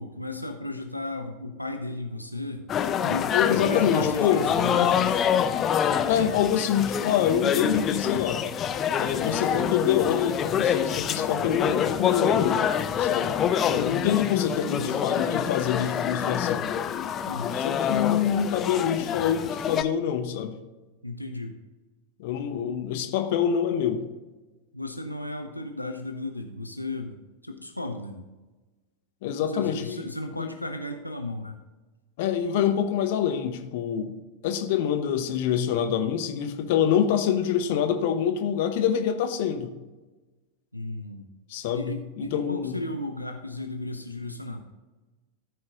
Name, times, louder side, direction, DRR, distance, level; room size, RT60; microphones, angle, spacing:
voice 1, 0.0-2.6 3.0-3.4 3.6-5.3 14.6-15.0 17.3-17.6 21.0-21.5 24.7-27.2 27.4-28.3 29.5-31.5 40.7-41.2 41.7-44.6, left 2 dB, 85° left, 4 dB, 0.6 m, -35 dB
sound 1, 2.7-19.8, left 8 dB, 30° left, 0.5 m, -26 dB
voice 2, 3.3-4.5 6.1-8.4 9.0-12.6 13.0-13.3 13.7-16.7 17.5-20.6 22.2-24.0 29.2-30.1 30.4-30.5 32.2-34.1 34.4-39.7 41.5-42.8, left 9 dB, 50° left, 7 dB, 0.9 m, -26 dB
13.5 x 4.6 x 3.7 m, 1.2 s
figure-of-eight pair, 90°, 0 cm